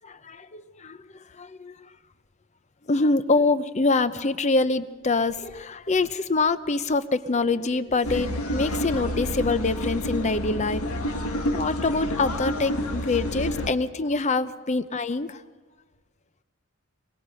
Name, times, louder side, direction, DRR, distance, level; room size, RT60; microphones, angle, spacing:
voice 1, 0.2-2.0 2.9-10.8 11.1-15.4, left 3 dB, 30° left, 13 dB, 0.6 m, -25 dB
sound 1, 8.0-13.7, left 1 dB, 75° left, 1.7 m, -29 dB
22.5 x 21.0 x 5.6 m, 1.4 s
head